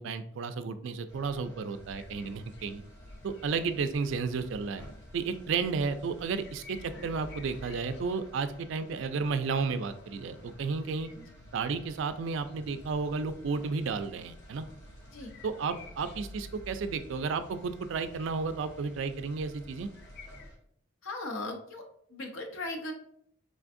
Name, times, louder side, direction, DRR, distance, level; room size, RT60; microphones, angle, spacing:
voice 1, 0.0-2.8 3.2-4.8 5.1-11.1 11.5-14.7 15.4-19.9, right 4 dB, 60° right, 10 dB, 0.3 m, -32 dB
sound 1, 1.1-20.6, equal, 15° left, 1.4 m, -55 dB
sound 2, 1.7-20.5, left 1 dB, 55° left, 0.4 m, -52 dB
voice 2, 21.0-21.8 22.1-22.9, left 2 dB, 75° left, 3 dB, 0.7 m, -37 dB
3.7 x 3.4 x 2.5 m, 0.69 s
head